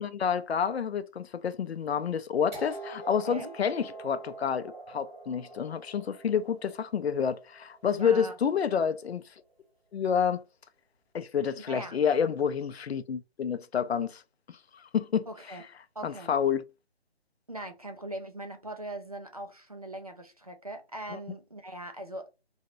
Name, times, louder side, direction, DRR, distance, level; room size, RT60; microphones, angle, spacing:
voice 1, 0.0-9.2 9.9-10.4 11.1-14.2 14.5-15.3 16.0-16.6 21.1-21.2, left 7 dB, 80° left, 0.5 m, -29 dB
sound 1, 2.5-8.4 9.5-9.6, right 2 dB, 15° right, 1.9 m, -45 dB
voice 2, 7.9-8.3 11.6-12.0 15.3-15.6 16.0-16.3 17.5-22.3, right 1 dB, 35° right, 0.4 m, -40 dB
3.1 x 2.8 x 2.5 m
hypercardioid pair, 175°, 32 cm